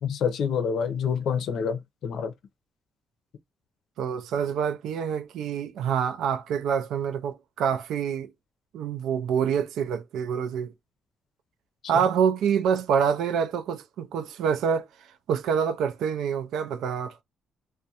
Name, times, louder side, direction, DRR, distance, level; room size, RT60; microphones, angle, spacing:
voice 1, 0.0-2.3, left 7 dB, 70° left, 0.6 m, -27 dB
voice 2, 4.0-8.3 8.7-10.7 11.9-14.9 15.3-17.1, right 7 dB, 80° right, 0.4 m, -26 dB
2.4 x 2.1 x 2.7 m
cardioid pair, 90°, 0 cm